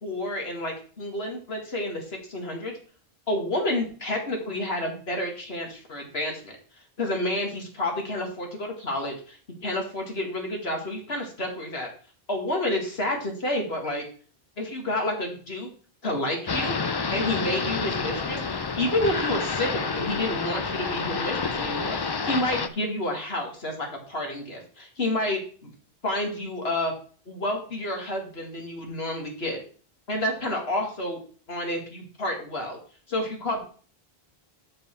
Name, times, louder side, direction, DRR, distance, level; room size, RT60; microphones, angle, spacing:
voice 1, 0.0-2.7 3.3-6.6 7.0-11.9 12.3-14.0 14.6-15.7 16.0-16.7 17.1-25.7 26.0-26.9 27.3-29.6 30.1-31.2 31.5-32.8 33.1-33.6, left 1 dB, 75° left, 1 dB, 2.5 m, -29 dB
sound 1, 16.5-22.7, left 4 dB, 35° left, 0.4 m, -29 dB
7.6 x 7.2 x 4.6 m, 0.42 s
omnidirectional pair, 1.1 m